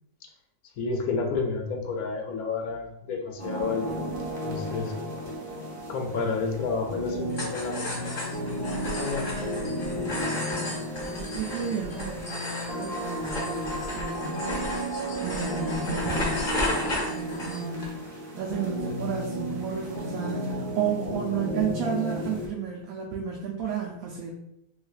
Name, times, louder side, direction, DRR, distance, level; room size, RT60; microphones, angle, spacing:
voice 1, 0.8-3.9 4.4-4.9 5.9-9.3, left 4 dB, 75° left, 3 dB, 1.0 m, -31 dB
sound 1, 3.4-22.5, equal, 40° right, 0.9 m, -33 dB
sound 2, 7.3-17.9, left 1 dB, 45° left, 0.7 m, -34 dB
voice 2, 11.2-14.6 14.9-24.3, right 7 dB, 75° right, -1 dB, 1.0 m, -33 dB
3.2 x 3.1 x 2.3 m, 0.81 s
omnidirectional pair, 1.6 m